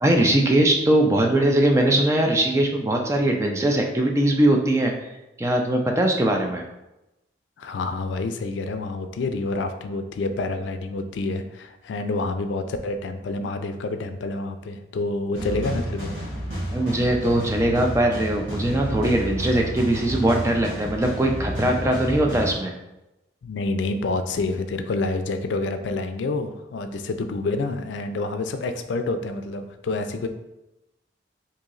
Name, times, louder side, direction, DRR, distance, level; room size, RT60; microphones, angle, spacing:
voice 1, 0.0-4.9 5.4-6.6 16.7-22.7, right 1 dB, 15° right, 2 dB, 0.3 m, -21 dB
voice 2, 7.6-16.1 23.4-30.3, left 3 dB, 85° left, 8 dB, 0.4 m, -28 dB
sound 1, 15.3-22.5, right 1 dB, 90° right, 1.3 m, -31 dB
2.9 x 2.7 x 3.8 m, 0.94 s
head